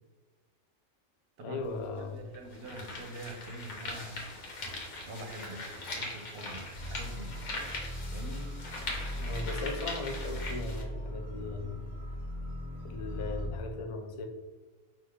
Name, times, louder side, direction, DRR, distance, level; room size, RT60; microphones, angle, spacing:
voice 1, 1.4-2.3 9.2-11.9 12.8-14.3, left 3 dB, 60° left, 3 dB, 0.3 m, -38 dB
sound 1, 1.6-1.7 2.3-10.8, left 2 dB, 85° left, 1.3 m, -41 dB
voice 2, 1.9-4.3 5.0-5.7 5.9-7.4 8.1-8.5, right 1 dB, 60° right, 5 dB, 0.8 m, -44 dB
sound 2, 6.8-13.5, equal, 30° left, 1.3 m, -39 dB
4.9 x 2.5 x 3.5 m, 1.3 s
omnidirectional pair, 1.2 m